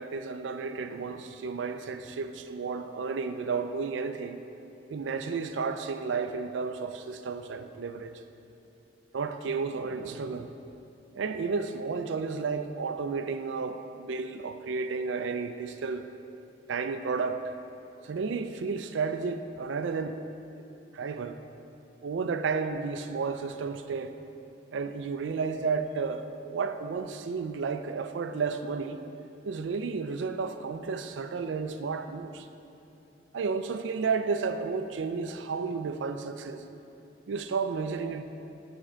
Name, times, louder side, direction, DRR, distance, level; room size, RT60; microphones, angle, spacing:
voice 1, 0.0-4.4 4.9-8.2 9.1-10.5 11.2-16.1 16.7-17.4 18.0-20.2 20.9-21.4 22.0-24.1 24.7-29.0 29.4-32.5 33.3-36.6 37.3-38.2, right 5 dB, 70° right, 9 dB, 0.4 m, -32 dB
8.7 x 4.5 x 5.0 m, 2.9 s
head